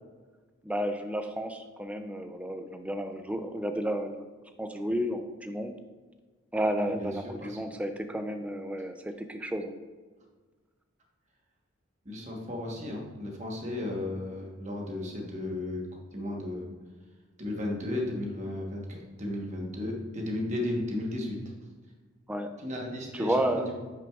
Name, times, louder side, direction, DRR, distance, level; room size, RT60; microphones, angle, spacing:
voice 1, 0.6-4.2 4.6-5.7 6.5-9.7 22.3-22.5 23.1-23.7, right 1 dB, 5° right, 6 dB, 0.3 m, -32 dB
voice 2, 6.8-7.6 12.0-15.9 16.1-16.7 17.4-21.4 22.6-23.7, left 1 dB, 35° right, 0 dB, 1.1 m, -34 dB
8.8 x 5.9 x 2.4 m, 1.4 s
head